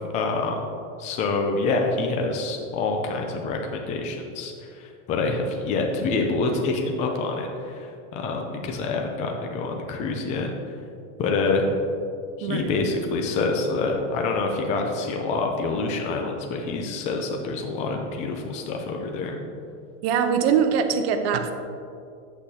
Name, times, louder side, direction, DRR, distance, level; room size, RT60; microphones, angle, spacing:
voice 1, 0.1-0.6 1.0-10.5 11.2-11.6 12.4-19.4, left 3 dB, 20° left, 2 dB, 0.4 m, -26 dB
voice 2, 12.4-12.7 20.0-21.5, right 7 dB, 55° right, 7 dB, 0.8 m, -22 dB
8.6 x 8.0 x 2.8 m, 2.4 s
supercardioid pair, 165°, 37 cm